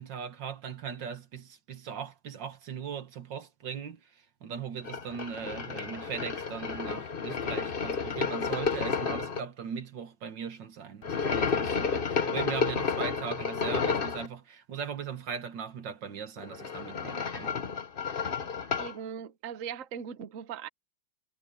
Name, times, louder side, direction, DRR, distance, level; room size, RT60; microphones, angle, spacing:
voice 1, 0.0-4.1 4.4-17.6, right 7 dB, 80° right, 2.2 m, -39 dB
sound 1, 4.8-9.4 11.0-14.3 16.4-19.0, left 5 dB, 35° left, 1.0 m, -31 dB
voice 2, 18.8-20.7, right 8 dB, 55° right, 1.2 m, -39 dB
omnidirectional pair, 1.9 m